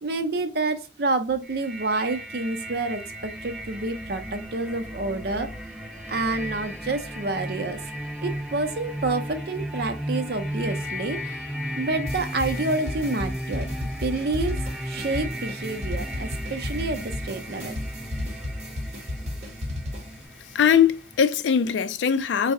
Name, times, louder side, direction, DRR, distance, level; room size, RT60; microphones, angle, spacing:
voice 1, 0.0-5.5 6.1-7.8 8.2-11.4 11.8-13.7 14.0-17.8, right 3 dB, 55° right, 0.5 m, -28 dB
sound 1, 1.4-21.2, equal, 5° right, 0.6 m, -35 dB
sound 2, 12.1-20.2, left 1 dB, 35° right, 0.8 m, -33 dB
voice 2, 20.5-22.5, left 7 dB, 75° left, 0.3 m, -21 dB
4.2 x 2.0 x 3.6 m
head